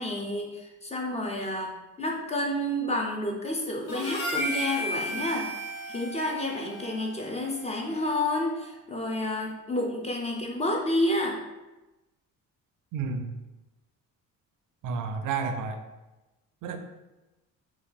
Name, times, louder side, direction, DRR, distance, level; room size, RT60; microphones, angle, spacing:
voice 1, 0.0-5.5 5.9-11.4, left 1 dB, 20° left, 0 dB, 0.5 m, -30 dB
Harmonica, 3.9-8.4, right 1 dB, 45° left, 1.0 m, -35 dB
voice 2, 12.9-13.4 14.8-15.8 16.6-16.8, right 5 dB, 65° right, 7 dB, 0.4 m, -31 dB
2.8 x 2.4 x 3.7 m, 1.0 s
cardioid pair, 115°, 33 cm